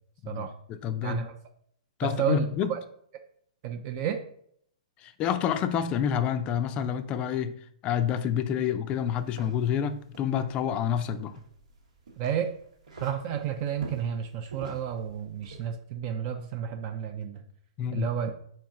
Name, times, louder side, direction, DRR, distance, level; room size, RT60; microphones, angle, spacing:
voice 1, 0.2-1.2 2.0-2.7 5.0-7.6 7.8-11.4 17.8-18.1, left 8 dB, 30° left, 11 dB, 0.4 m, -28 dB
voice 2, 1.0-1.3 2.0-2.8 3.6-4.2 12.2-12.5 13.0-17.4 17.9-18.3, right 8 dB, 40° right, 5 dB, 0.4 m, -31 dB
sound 1, 8.9-15.7, right 3 dB, 80° right, 1.2 m, -49 dB
4.4 x 2.9 x 3.6 m, 0.64 s
hypercardioid pair, 130°, 4 cm